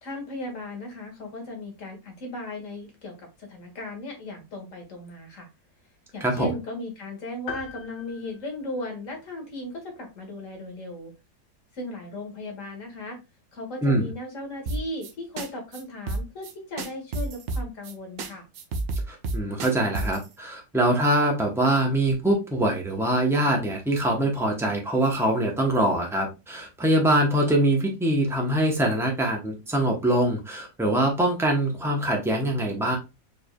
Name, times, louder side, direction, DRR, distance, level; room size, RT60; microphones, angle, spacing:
voice 1, 0.0-5.5 6.1-11.1 11.7-13.2 13.5-18.4, left 1 dB, 45° left, 2 dB, 1.6 m, -36 dB
voice 2, 6.2-6.5 13.8-14.1 19.1-32.9, right 1 dB, 5° right, 0 dB, 0.4 m, -23 dB
sound 1, 7.5-9.3, left 5 dB, 90° left, 1.5 m, -40 dB
sound 2, 14.7-15.1 15.4-15.5 15.7-15.8 16.1-16.5 16.8-17.9 18.2-18.3 18.5-20.2, right 3 dB, 85° right, 0.6 m, -29 dB
4.6 x 3.4 x 2.3 m, 0.26 s
omnidirectional pair, 2.0 m